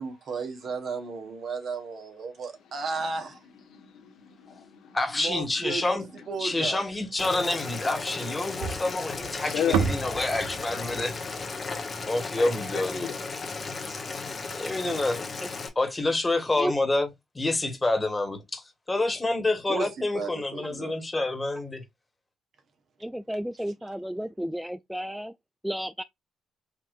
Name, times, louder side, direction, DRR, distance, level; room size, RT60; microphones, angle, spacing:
voice 1, 0.0-3.4 5.2-6.8 19.7-19.9 20.1-20.9 23.8-23.9, right 4 dB, 55° right, 1.3 m, -34 dB
voice 2, 3.7-5.0 5.7-5.8 6.6-6.7 9.4-9.8 10.4-10.8 12.4-13.2, left 8 dB, 75° left, 1.4 m, -34 dB
voice 3, 4.9-6.0 6.4-11.1 12.0-13.1 14.5-15.2 15.8-17.1 17.4-21.8, left 2 dB, 20° left, 1.7 m, -28 dB
Boiling, 7.2-15.7, left 4 dB, 40° left, 1.1 m, -35 dB
sound 1, 8.6-12.9, right 7 dB, 90° right, 0.5 m, -32 dB
voice 4, 23.0-25.3 25.6-26.0, equal, 5° right, 0.3 m, -32 dB
5.0 x 2.8 x 2.6 m
supercardioid pair, 70°, 0 cm